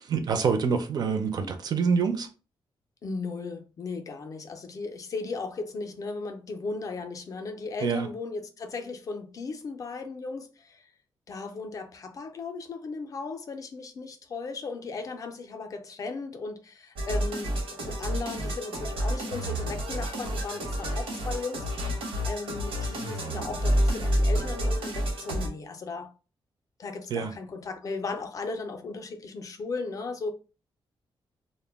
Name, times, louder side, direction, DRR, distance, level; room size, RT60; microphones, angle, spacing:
voice 1, 0.0-2.3 7.8-8.1 27.1-27.3, right 5 dB, 45° right, 0.4 m, -26 dB
voice 2, 3.0-10.9 11.3-22.0 22.3-26.1 26.8-30.3, left 4 dB, 40° left, 0.4 m, -36 dB
sound 1, 17.0-25.5, equal, 85° right, 0.9 m, -29 dB
2.1 x 2.1 x 3.3 m
wide cardioid pair, 165°, 9 cm